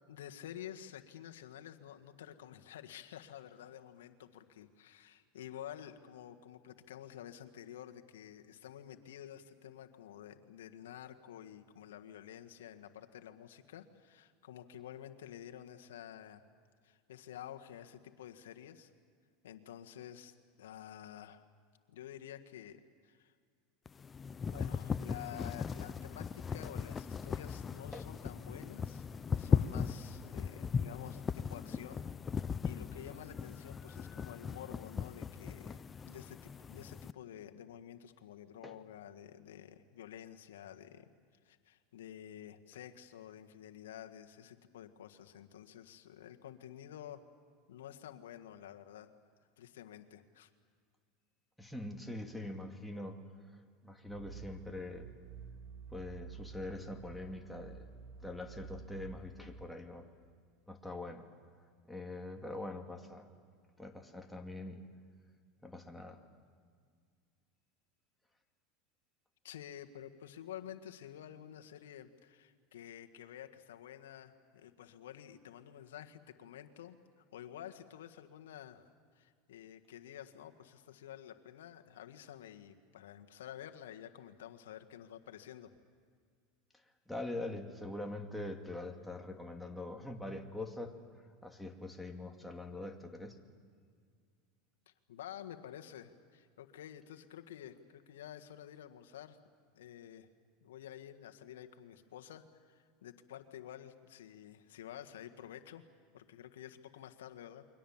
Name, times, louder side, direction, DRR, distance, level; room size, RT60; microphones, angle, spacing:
voice 1, 0.1-16.4 16.8-18.9 19.4-21.4 21.9-23.3 24.4-29.1 29.4-32.0 32.3-41.1 41.4-47.2 47.7-49.1 49.6-50.5 69.4-85.7 95.1-99.4 99.7-100.3 100.6-105.8 106.1-107.7, left 10 dB, 90° left, 6 dB, 1.6 m, -50 dB
sound 1, 23.9-37.1, left 6 dB, 25° left, 0.6 m, -38 dB
voice 2, 51.6-53.2 53.5-55.1 55.9-57.9 58.2-60.1 60.7-61.3 61.9-63.3 63.8-64.8 65.6-66.2 87.1-93.4, left 2 dB, 5° left, 3 dB, 2.4 m, -43 dB
sound 2, 54.1-59.6, right 6 dB, 80° right, 1.6 m, -50 dB
29.0 x 23.5 x 7.3 m, 2.1 s
supercardioid pair, 115°, 0 cm